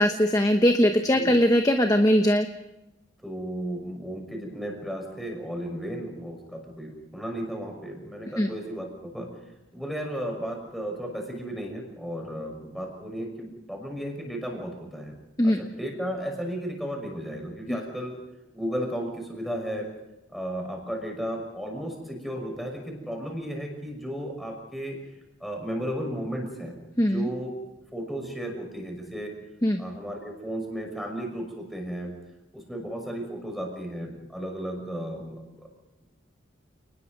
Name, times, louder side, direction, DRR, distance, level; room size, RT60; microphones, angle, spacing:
voice 1, 0.0-2.5 8.4-8.5 15.4-15.6 17.7-17.8 27.0-27.3 29.6-29.8, equal, 15° left, 5 dB, 1.1 m, -21 dB
voice 2, 3.2-9.3 9.7-15.1 15.4-18.1 18.5-19.9 20.3-25.0 25.4-27.5 27.9-29.3 29.8-32.2 32.5-35.7, equal, ahead, 1 dB, 5.9 m, -34 dB
29.0 x 20.0 x 5.3 m, 0.95 s
head